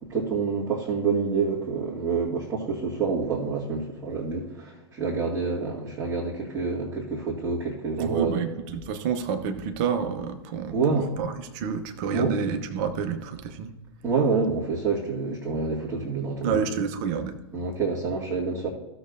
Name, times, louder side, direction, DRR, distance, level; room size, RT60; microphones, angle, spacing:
voice 1, 0.0-8.5 10.7-11.1 12.1-12.3 14.0-16.6 17.5-18.7, right 4 dB, 15° right, -7 dB, 2.0 m, -27 dB
voice 2, 8.0-13.7 16.4-17.4, right 6 dB, 40° right, 7 dB, 1.0 m, -29 dB
15.5 x 6.5 x 2.7 m, 1.1 s
figure-of-eight pair, 100°, 15 cm